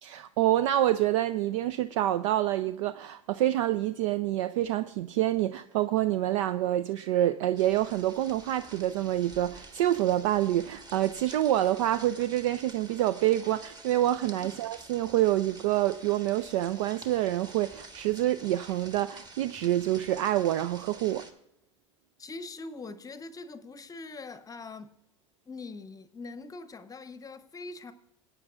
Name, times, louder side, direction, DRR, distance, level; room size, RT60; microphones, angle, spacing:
voice 1, 0.0-21.3, right 13 dB, 65° right, 0.4 m, -27 dB
sound 1, 7.5-21.3, right 2 dB, 25° right, 1.4 m, -49 dB
voice 2, 22.2-24.9 25.5-27.9, left 3 dB, 20° left, 0.8 m, -42 dB
21.0 x 8.9 x 2.4 m
hypercardioid pair, 80°, 17 cm